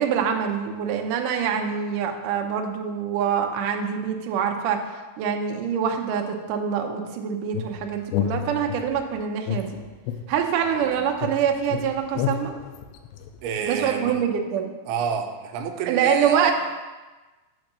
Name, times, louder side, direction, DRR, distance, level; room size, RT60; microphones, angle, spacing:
voice 1, 0.0-4.8 5.2-9.8 10.3-12.5 13.6-14.7 15.9-16.5, right 7 dB, 75° right, 3 dB, 2.0 m, -25 dB
sound 1, 7.5-9.0 9.5-10.9 11.2-13.7, left 8 dB, 80° left, 2.3 m, -30 dB
voice 2, 13.4-14.2 14.9-16.5, right 7 dB, 90° right, 5 dB, 2.7 m, -29 dB
8.0 x 4.2 x 6.7 m, 1.2 s
omnidirectional pair, 4.3 m